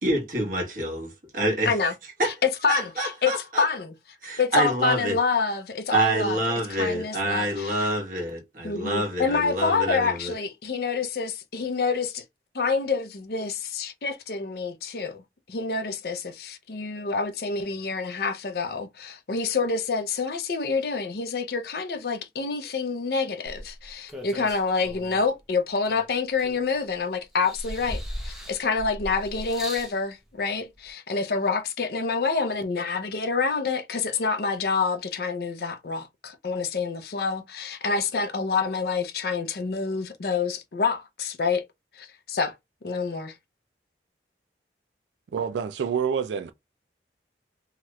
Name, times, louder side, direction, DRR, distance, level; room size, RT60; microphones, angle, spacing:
voice 1, 0.0-1.7 2.2-2.3 2.7-3.6 4.2-5.2 5.9-10.3, right 1 dB, 50° right, 1.2 m, -27 dB
voice 2, 2.2-3.9 4.4-6.4 6.7-7.9 8.6-12.2 12.5-15.2 15.5-41.7 42.0-42.5 42.8-43.4, left 4 dB, 55° left, 0.5 m, -27 dB
sound 1, 23.5-25.3 25.8-26.9 27.3-30.0 30.9-31.0, equal, ahead, 0.6 m, -38 dB
voice 3, 45.3-46.5, right 7 dB, 85° right, 0.3 m, -27 dB
2.8 x 2.4 x 3.0 m
head